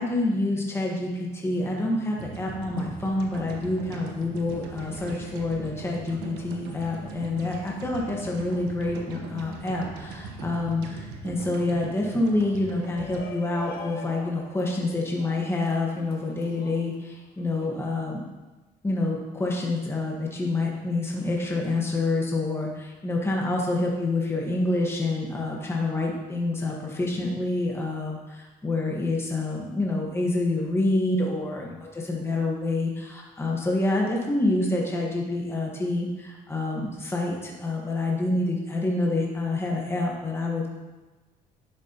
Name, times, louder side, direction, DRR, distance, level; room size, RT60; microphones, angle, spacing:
voice 1, 0.0-18.2 18.8-40.7, left 2 dB, 15° left, -2 dB, 1.5 m, -27 dB
sound 1, 2.2-14.4, right 3 dB, 90° right, 1.2 m, -40 dB
Shout, 12.6-17.7, left 5 dB, 65° left, 1.3 m, -44 dB
10.5 x 7.3 x 3.0 m, 1.2 s
cardioid pair, 110°, 17 cm